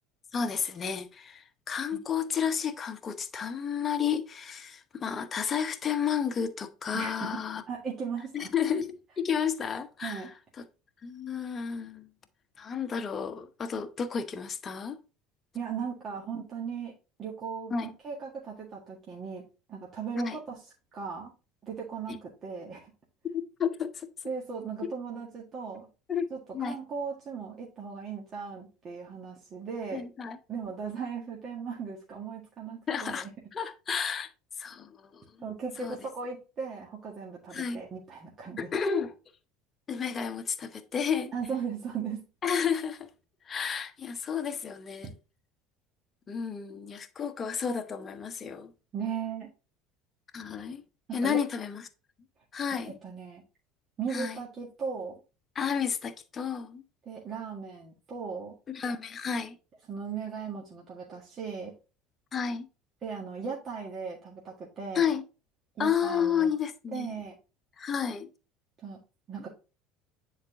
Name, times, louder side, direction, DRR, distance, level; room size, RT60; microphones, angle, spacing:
voice 1, 0.3-7.6 8.3-10.7 11.0-12.1 12.6-15.0 17.7-17.9 20.1-20.4 22.1-22.2 23.3-24.1 24.8-24.9 26.1-26.8 29.9-30.4 32.9-33.3 33.5-34.3 34.6-35.3 35.8-36.0 37.5-37.8 38.6-39.1 39.9-41.3 42.4-43.1 43.5-45.1 46.3-48.7 50.3-50.8 51.1-51.8 52.5-53.0 54.1-54.4 55.5-56.8 58.7-59.6 62.3-62.7 64.9-65.2 65.8-67.2 67.8-68.3, left 7 dB, 30° left, 0.9 m, -31 dB
voice 2, 6.9-7.4 7.7-8.5 10.0-10.3 15.5-16.9 17.2-19.4 19.7-20.6 20.9-21.3 21.6-22.9 24.2-25.9 26.3-30.0 30.5-33.3 35.4-38.7 41.3-42.2 48.9-49.5 51.1-51.4 52.7-53.4 54.0-55.2 57.1-58.5 59.9-61.7 63.0-65.1 65.8-66.5 66.9-67.4 68.8-69.0 69.3-69.5, right 6 dB, 35° right, 1.8 m, -37 dB
9.7 x 4.1 x 2.8 m
figure-of-eight pair, 65°, 0 cm